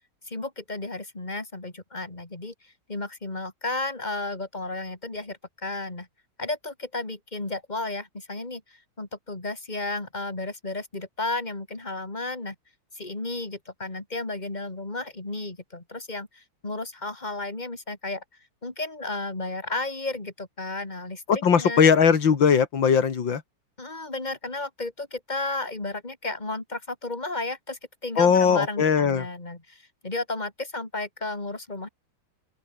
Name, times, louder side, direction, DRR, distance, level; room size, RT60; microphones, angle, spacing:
voice 1, 0.3-6.1 6.4-12.6 12.9-18.2 18.6-21.8 23.8-31.9, left 2 dB, 20° left, 3.5 m, -33 dB
voice 2, 21.3-23.4 28.2-29.3, left 6 dB, 85° left, 2.8 m, -19 dB
open air
omnidirectional pair, 2.0 m